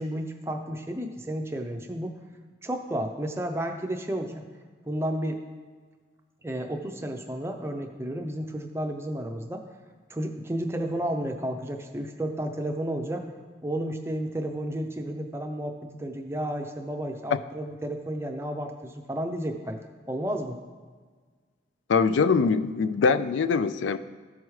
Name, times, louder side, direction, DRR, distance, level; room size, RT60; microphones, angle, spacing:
voice 1, 0.0-2.2 2.6-4.4 4.9-5.4 6.4-9.6 10.1-13.2 13.6-19.8 20.1-20.6, right 1 dB, 15° right, 4 dB, 0.5 m, -32 dB
voice 2, 21.9-24.0, left 5 dB, 80° left, 12 dB, 0.3 m, -23 dB
13.5 x 4.8 x 3.2 m, 1.5 s
head